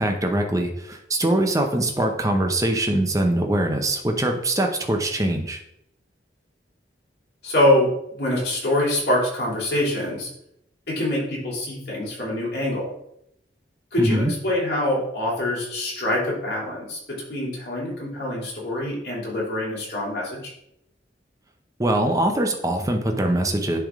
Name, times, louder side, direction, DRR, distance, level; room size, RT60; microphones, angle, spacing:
voice 1, 0.0-5.6 14.0-14.3 21.8-23.8, right 1 dB, 20° right, 4 dB, 0.8 m, -22 dB
voice 2, 7.4-10.3 10.9-12.9 13.9-20.5, left 1 dB, 60° left, -5 dB, 2.9 m, -24 dB
10.5 x 3.5 x 3.7 m, 0.78 s
head